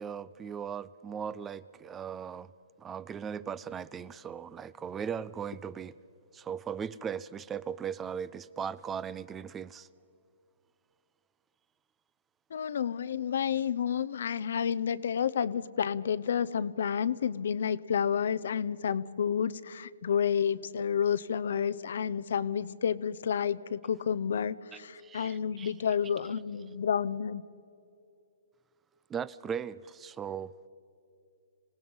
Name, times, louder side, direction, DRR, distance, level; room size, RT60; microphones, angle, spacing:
voice 1, 0.0-2.5 2.8-6.0 6.3-9.9 24.7-26.1 29.1-30.5, right 7 dB, 15° right, 19 dB, 0.4 m, -38 dB
voice 2, 12.5-27.4, left 8 dB, 65° left, 17 dB, 0.7 m, -30 dB
26.5 x 17.5 x 5.6 m, 2.5 s
hypercardioid pair, 140°, 0 cm